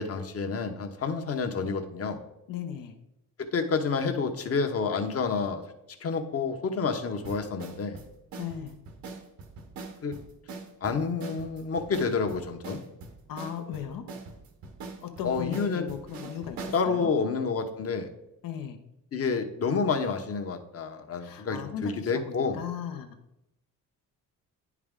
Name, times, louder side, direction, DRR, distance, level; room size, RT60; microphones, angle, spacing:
voice 1, 0.0-2.2 3.4-5.6 6.0-8.0 10.0-10.1 10.8-12.8 15.2-15.9 16.7-18.1 19.1-22.6, left 5 dB, 45° left, 6 dB, 1.0 m, -29 dB
voice 2, 2.5-3.0 8.4-8.8 13.3-14.1 15.0-17.1 18.4-18.8 21.2-23.2, left 9 dB, 75° left, 7 dB, 0.9 m, -37 dB
sound 1, 7.2-16.8, right 3 dB, 90° right, 1.2 m, -42 dB
9.9 x 4.8 x 3.7 m, 0.86 s
cardioid pair, 95°, 34 cm